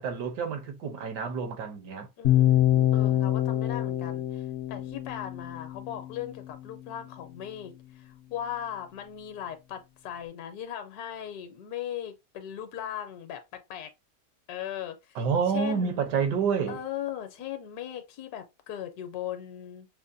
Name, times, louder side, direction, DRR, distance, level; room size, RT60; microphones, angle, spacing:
voice 1, 0.0-2.1 15.1-16.8, right 6 dB, 80° right, 1.5 m, -28 dB
sound 1, 2.2-6.3, left 13 dB, 90° left, 0.5 m, -25 dB
voice 2, 2.2-13.9 14.5-15.2 15.5-16.0 16.7-19.9, left 10 dB, 75° left, 1.1 m, -38 dB
5.4 x 2.1 x 2.5 m
omnidirectional pair, 1.8 m